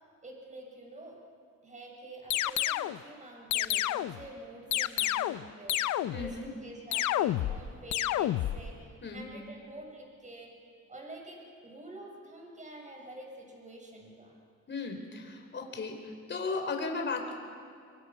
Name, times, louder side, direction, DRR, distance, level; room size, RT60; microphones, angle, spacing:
voice 1, 0.2-1.2 1.6-5.8 6.1-10.5 10.9-14.4, right 1 dB, 25° right, 0 dB, 6.7 m, -47 dB
sound 1, 2.3-3.0 3.5-4.2 4.7-5.4 5.7-6.3 6.9-7.6 7.9-8.6, left 13 dB, 70° left, 0.7 m, -29 dB
voice 2, 6.1-6.5 9.0-9.2 14.7-16.0 16.3-17.3, left 4 dB, 40° left, 2 dB, 4.1 m, -35 dB
24.5 x 24.0 x 5.9 m, 2.3 s
cardioid pair, 90°, 30 cm